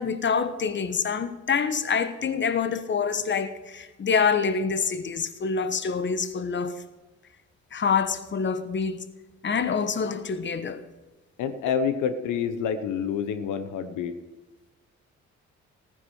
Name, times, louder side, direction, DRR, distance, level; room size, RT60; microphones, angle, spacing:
voice 1, 0.0-6.8 7.7-9.0 9.4-10.8, left 6 dB, 40° left, 1.2 m, -26 dB
voice 2, 11.4-14.2, left 7 dB, 85° left, 1.1 m, -28 dB
15.0 x 9.7 x 6.4 m
cardioid pair, 90°, 30 cm